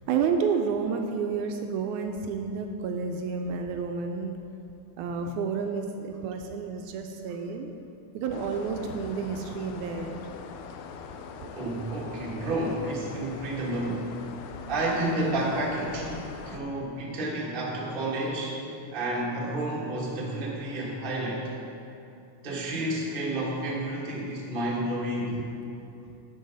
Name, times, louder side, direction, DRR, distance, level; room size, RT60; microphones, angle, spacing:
voice 1, 0.1-4.3 5.0-7.7 8.1-10.2 11.7-11.8 25.3-25.5, right 5 dB, 80° right, 4 dB, 1.9 m, -30 dB
sound 1, 8.3-16.6, left 6 dB, 80° left, 1.7 m, -42 dB
voice 2, 11.5-14.1 14.7-18.6 18.9-21.4 22.4-25.4, right 1 dB, 35° right, -4 dB, 0.8 m, -30 dB
10.5 x 7.7 x 4.0 m, 2.7 s
omnidirectional pair, 3.6 m